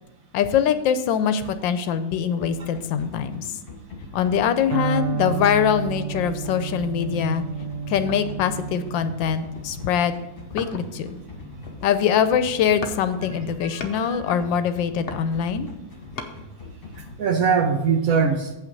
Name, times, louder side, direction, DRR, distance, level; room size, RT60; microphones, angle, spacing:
voice 1, 0.3-3.5 4.1-7.4 7.9-10.1 10.5-11.1 11.8-15.7, left 8 dB, 85° left, 10 dB, 1.4 m, -23 dB
sound 1, 2.4-17.2, left 3 dB, 30° left, 1.5 m, -42 dB
Electric guitar, 4.7-12.5, right 7 dB, 90° right, 1.4 m, -32 dB
sound 2, 8.1-8.5 9.1-9.8 10.6-11.1 11.5-12.2 12.8-13.0 13.3-14.0 14.8-16.4 16.9-17.0, left 4 dB, 50° left, 0.7 m, -38 dB
voice 2, 13.6-14.4 17.0-18.5, right 6 dB, 60° right, 5 dB, 1.0 m, -23 dB
7.9 x 5.8 x 5.3 m, 0.99 s
omnidirectional pair, 2.0 m